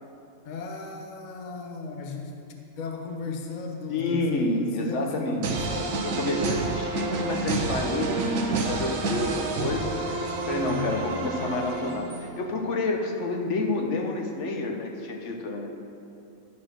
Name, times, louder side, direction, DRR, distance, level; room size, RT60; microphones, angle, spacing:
voice 1, 0.4-2.3 2.8-6.0 10.5-11.0, left 4 dB, 45° left, 2 dB, 0.7 m, -36 dB
voice 2, 3.9-5.5 6.0-15.7, left 2 dB, 65° left, 2 dB, 1.1 m, -29 dB
sound 1, 5.4-12.4, right 3 dB, 80° right, 1.2 m, -29 dB
11.0 x 4.4 x 6.1 m, 2.7 s
omnidirectional pair, 1.4 m